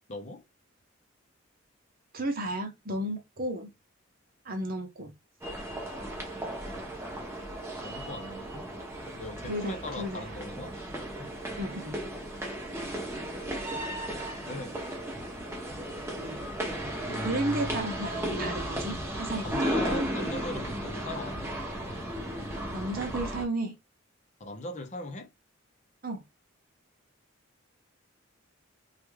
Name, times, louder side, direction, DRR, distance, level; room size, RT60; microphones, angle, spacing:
voice 1, 0.1-0.4 7.8-8.7 9.1-10.7 14.5-14.8 17.1-17.4 19.4-21.5 24.4-25.3, left 1 dB, 35° left, 0.6 m, -39 dB
voice 2, 2.1-3.7 4.4-5.1 9.5-10.4 11.6-12.0 16.2-16.4 17.2-19.7 22.7-23.7 26.0-26.2, right 1 dB, 45° right, 0.8 m, -33 dB
sound 1, 5.4-23.4, right 1 dB, 10° right, 0.9 m, -35 dB
3.2 x 2.4 x 3.2 m
head